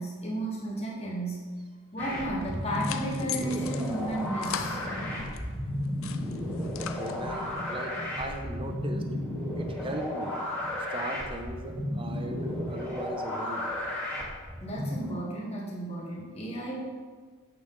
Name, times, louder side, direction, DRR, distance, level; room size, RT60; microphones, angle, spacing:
voice 1, 0.0-1.5 1.9-4.8 14.6-16.8, right 1 dB, 30° left, -3 dB, 1.4 m, -33 dB
sound 1, 2.0-15.1, left 1 dB, 5° left, 2.4 m, -33 dB
sound 2, 2.4-5.4 5.8-7.6, left 9 dB, 65° left, 0.4 m, -40 dB
voice 2, 6.8-9.1 9.5-10.4 10.9-13.7, right 1 dB, 25° right, 4 dB, 0.6 m, -38 dB
8.5 x 5.6 x 3.9 m, 1.5 s
head